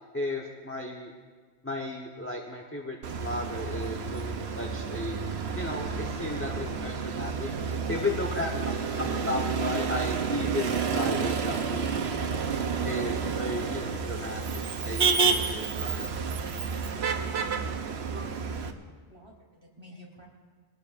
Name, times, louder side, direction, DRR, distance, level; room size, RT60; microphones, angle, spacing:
voice 1, 0.1-1.1 1.6-5.2 5.5-7.5 7.9-12.0 12.8-16.0, left 2 dB, 15° left, 0 dB, 1.0 m, -34 dB
Motor vehicle (road), 3.0-18.7, right 5 dB, 75° right, 1.1 m, -30 dB
voice 2, 18.2-18.8 19.1-20.3, equal, 25° right, -3 dB, 3.4 m, -51 dB
23.0 x 19.0 x 2.6 m, 1.5 s
omnidirectional pair, 1.1 m